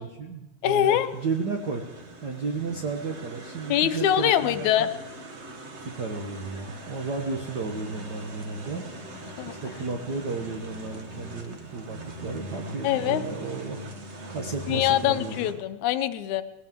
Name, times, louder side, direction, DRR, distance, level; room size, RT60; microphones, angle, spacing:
voice 1, 0.0-1.8 2.2-4.7 5.9-8.8 9.5-13.8 14.3-15.5, right 4 dB, 60° right, 1 dB, 1.0 m, -33 dB
voice 2, 0.6-1.1 3.7-4.9 9.4-9.5 12.8-13.2 14.7-16.4, left 11 dB, 80° left, 11 dB, 2.0 m, -23 dB
sound 1, 0.8-15.5, right 1 dB, 75° right, 0.6 m, -41 dB
sound 2, 7.4-14.9, left 2 dB, 30° right, 5.2 m, -51 dB
20.0 x 16.5 x 3.7 m, 0.95 s
omnidirectional pair, 3.4 m